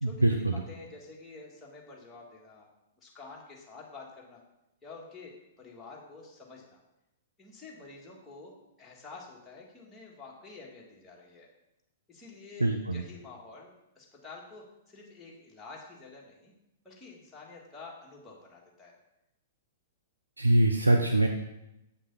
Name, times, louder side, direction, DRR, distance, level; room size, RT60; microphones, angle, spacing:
voice 1, 0.0-0.6 12.6-13.0 20.4-21.3, right 1 dB, 90° right, 4 dB, 0.5 m, -24 dB
voice 2, 0.5-2.7 3.0-4.4 4.8-5.3 5.6-6.8 7.4-8.5 8.8-11.5 12.1-16.5 16.8-18.9, left 3 dB, 10° left, -4 dB, 1.9 m, -49 dB
8.0 x 6.0 x 4.1 m, 0.89 s
figure-of-eight pair, 105°, 0 cm